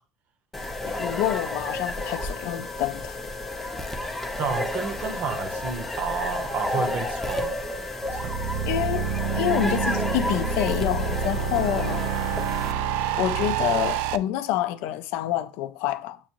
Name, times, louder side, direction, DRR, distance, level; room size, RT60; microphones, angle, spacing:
sound 1, 0.5-12.7, left 2 dB, 5° left, 0.6 m, -31 dB
voice 1, 0.9-3.2 8.7-12.0 13.2-16.2, left 12 dB, 70° left, 0.4 m, -27 dB
voice 2, 4.4-7.6 8.1-8.5, right 6 dB, 45° right, 0.8 m, -31 dB
sound 2, 8.0-14.2, right 7 dB, 70° right, 0.3 m, -27 dB
7.0 x 2.5 x 3.0 m
supercardioid pair, 120°, 4 cm